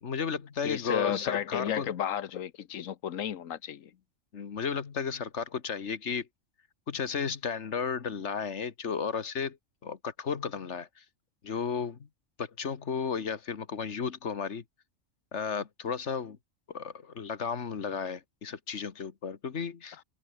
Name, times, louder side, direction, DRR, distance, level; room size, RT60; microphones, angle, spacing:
voice 1, 0.0-1.9 4.3-6.3 6.9-9.6 9.8-11.0 11.4-12.1 12.4-14.6 15.3-16.4 16.7-20.0, left 6 dB, 60° left, 1.7 m, -33 dB
voice 2, 0.6-3.9, left 9 dB, 80° left, 1.3 m, -33 dB
omnidirectional pair, 1.4 m